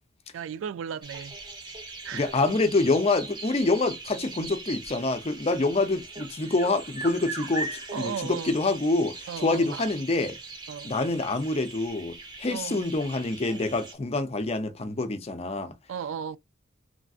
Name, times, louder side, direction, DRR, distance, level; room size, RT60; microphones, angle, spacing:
voice 1, 0.3-1.4 2.0-2.3 7.9-8.6 9.3-9.8 10.7-10.9 12.5-12.8 15.9-16.4, right 8 dB, 75° right, 0.3 m, -35 dB
sound 1, 1.0-13.9, right 3 dB, 25° right, 0.8 m, -40 dB
voice 2, 2.1-10.4 10.8-15.7, left 2 dB, 30° left, 0.5 m, -26 dB
3.3 x 2.5 x 2.4 m
head